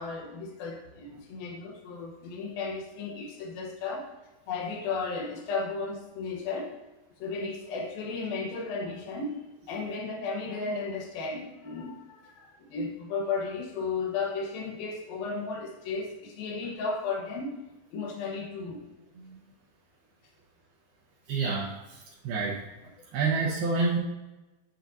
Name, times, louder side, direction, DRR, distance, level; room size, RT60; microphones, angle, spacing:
voice 1, 0.0-4.1 4.5-6.7 7.2-17.6 17.9-18.9 23.0-23.1, left 4 dB, 70° left, 1 dB, 2.7 m, -34 dB
voice 2, 21.3-22.6 23.1-24.0, right 4 dB, 75° right, -6 dB, 2.9 m, -28 dB
9.0 x 7.9 x 2.7 m, 1.1 s
omnidirectional pair, 4.8 m